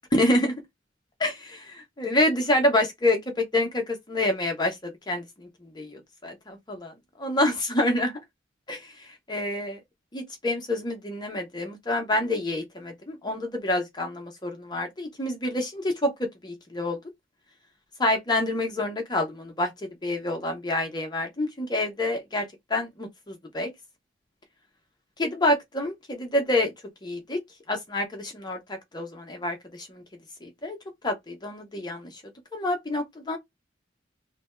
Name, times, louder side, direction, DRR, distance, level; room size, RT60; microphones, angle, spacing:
voice 1, 0.1-0.5 1.2-1.3 2.0-5.2 5.8-6.9 7.2-8.1 8.7-8.8 9.3-9.8 10.1-16.1 16.4-17.0 18.0-19.7 20.0-22.4 22.7-23.7 25.2-26.7 27.0-27.4 27.7-30.0 30.4-30.8 31.0-32.1 32.5-33.4, left 1 dB, 20° left, 0.7 m, -27 dB
3.3 x 2.2 x 4.2 m
head